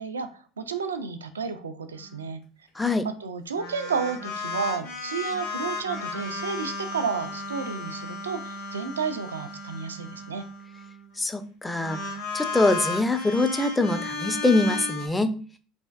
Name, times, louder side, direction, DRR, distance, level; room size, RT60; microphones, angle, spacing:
voice 1, 0.0-2.4 3.0-10.5, right 5 dB, 80° right, 9 dB, 0.3 m, -32 dB
voice 2, 2.8-3.1 11.2-12.0 12.3-15.4, left 2 dB, 10° left, 9 dB, 0.4 m, -24 dB
sound 1, 3.5-10.9 11.8-15.1, left 3 dB, 85° left, 1.2 m, -34 dB
3.3 x 2.4 x 2.3 m, 0.39 s
figure-of-eight pair, 65°, 0 cm